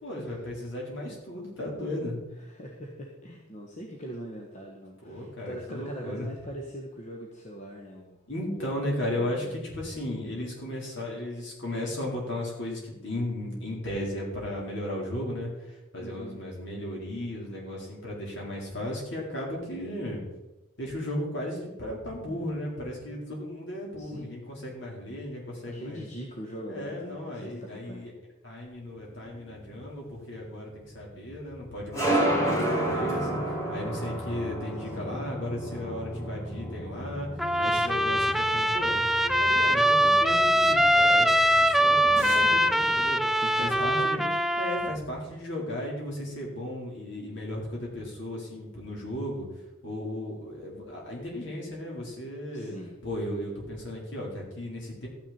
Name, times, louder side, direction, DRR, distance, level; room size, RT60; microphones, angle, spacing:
voice 1, 0.0-2.2 5.0-6.3 8.3-20.2 20.8-26.0 26.7-28.1 28.4-37.3 37.6-43.2 43.5-44.2 44.6-49.5 49.8-52.7 53.0-55.1, left 1 dB, 60° left, -2 dB, 4.2 m, -35 dB
voice 2, 2.4-8.2 8.5-8.9 9.1-9.5 16.0-16.4 24.0-24.3 25.6-28.1 34.8-35.2 43.4-44.4 52.5-53.0, equal, 35° left, 0 dB, 1.4 m, -41 dB
sound 1, 29.0-43.0, right 1 dB, 15° left, 2.8 m, -33 dB
Trumpet, 37.4-45.0, equal, ahead, 0.4 m, -23 dB
13.5 x 9.4 x 4.4 m, 1.0 s
head